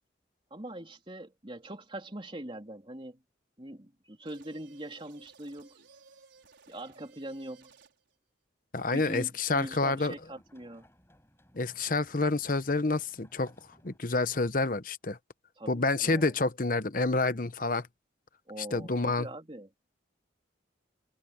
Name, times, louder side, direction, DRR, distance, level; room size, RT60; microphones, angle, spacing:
voice 1, 0.5-3.2 3.6-5.8 6.7-7.7 8.9-10.9 15.6-16.3 18.5-19.7, right 1 dB, 25° right, 3.3 m, -42 dB
sound 1, 4.3-8.2, right 5 dB, 75° right, 5.3 m, -58 dB
voice 2, 8.7-10.1 11.5-13.5 13.8-15.2 15.7-17.9 18.7-19.3, left 3 dB, 45° left, 1.0 m, -28 dB
sound 2, 9.9-14.0, equal, 15° left, 7.2 m, -62 dB
head